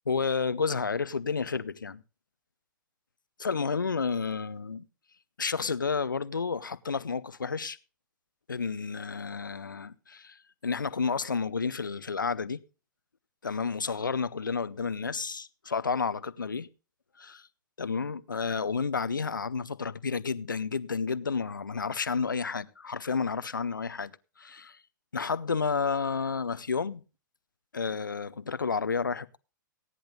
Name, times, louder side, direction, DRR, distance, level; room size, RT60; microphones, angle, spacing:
voice 1, 0.1-2.0 3.4-4.8 5.4-7.8 8.5-12.6 13.4-16.7 17.2-17.5 17.8-24.1 24.4-24.8 25.1-27.0 27.7-29.4, left 5 dB, 75° left, 0.7 m, -31 dB
16.0 x 10.0 x 3.9 m
figure-of-eight pair, 105°, 11 cm